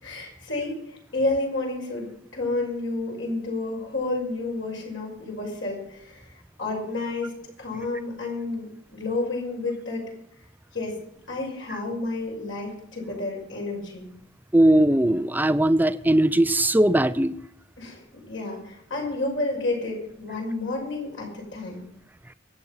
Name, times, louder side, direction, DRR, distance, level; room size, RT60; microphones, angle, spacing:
voice 1, 0.0-7.3 7.6-10.1 10.7-10.9 11.3-14.1 17.8-21.8, left 2 dB, 70° left, -1 dB, 6.1 m, -30 dB
voice 2, 14.5-17.4, right 1 dB, 10° right, 13 dB, 0.5 m, -19 dB
24.5 x 8.3 x 5.6 m, 0.75 s
head